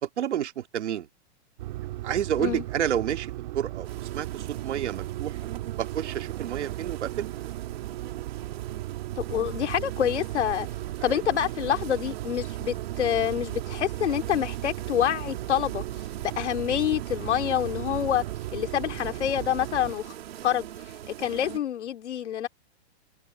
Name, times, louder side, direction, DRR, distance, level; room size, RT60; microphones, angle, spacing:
voice 1, 0.0-1.1 2.0-7.3, right 10 dB, 85° right, 2.5 m, -30 dB
sound 1, 1.6-19.9, right 16 dB, 45° right, 1.6 m, -36 dB
sound 2, 3.8-21.6, right 12 dB, 65° right, 2.8 m, -41 dB
voice 2, 9.2-10.7 11.0-15.8 16.2-18.2 18.5-20.1 20.4-20.7 21.2-22.5, left 10 dB, 90° left, 2.9 m, -27 dB
supercardioid pair, 175°, 34 cm